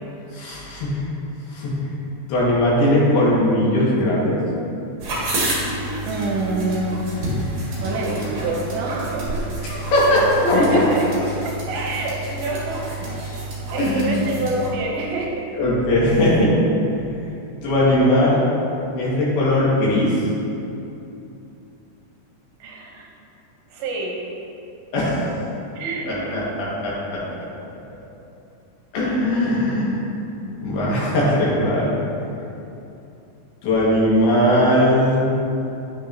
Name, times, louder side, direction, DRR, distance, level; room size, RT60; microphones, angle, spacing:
voice 1, 0.3-1.0 1.5-1.7 2.3-4.4 9.7-10.8 13.8-14.3 15.5-16.5 17.0-17.1 17.6-18.4 19.0-20.2 24.9-25.4 26.1-27.2 28.9-30.0 30.6-32.0 33.6-35.3, left 1 dB, 65° left, -7 dB, 3.6 m, -19 dB
sound 1, 5.0-14.7, right 1 dB, 45° right, 3.0 m, -29 dB
voice 2, 6.1-7.0 7.7-13.2 13.7-15.5 22.6-23.1 23.7-24.2 25.8-26.4, right 2 dB, 75° right, -2 dB, 3.0 m, -27 dB
10.0 x 9.7 x 2.9 m, 2.8 s
omnidirectional pair, 5.3 m